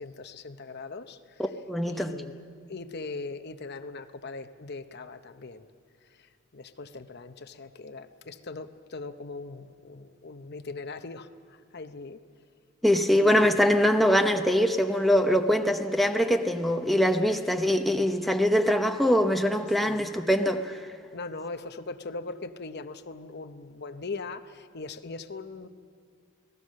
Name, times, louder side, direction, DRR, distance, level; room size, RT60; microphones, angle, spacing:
voice 1, 0.0-1.4 1.9-2.4 2.7-5.6 6.2-11.3 11.7-12.2 13.1-13.5 19.8-20.1 21.1-25.7, left 3 dB, 55° left, 9 dB, 0.9 m, -40 dB
voice 2, 1.4-2.1 12.8-20.8, equal, ahead, 5 dB, 0.9 m, -23 dB
28.5 x 18.5 x 6.5 m, 2.1 s
head